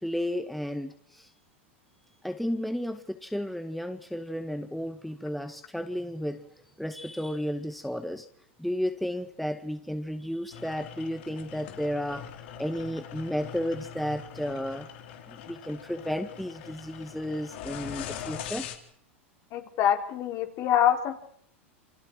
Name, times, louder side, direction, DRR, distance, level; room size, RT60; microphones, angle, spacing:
voice 1, 0.0-1.3 2.2-6.5 6.8-8.3 8.6-12.3 12.6-14.9 15.3-18.7, equal, ahead, 8 dB, 1.9 m, -33 dB
sound 1, 10.5-18.8, left 9 dB, 65° left, 4.1 m, -42 dB
voice 2, 19.5-21.2, left 10 dB, 50° left, 6 dB, 3.8 m, -25 dB
28.5 x 26.0 x 4.7 m, 0.66 s
hypercardioid pair, 100°, 7 cm